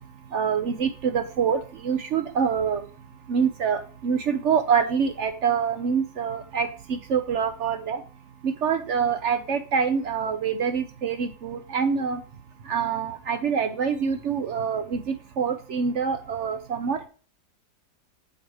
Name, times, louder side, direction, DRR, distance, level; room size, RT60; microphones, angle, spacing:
voice 1, 0.3-2.8 3.3-8.0 8.4-12.2 12.7-17.1, right 6 dB, 60° right, 9 dB, 0.7 m, -25 dB
7.7 x 4.9 x 4.7 m, 0.36 s
omnidirectional pair, 1.9 m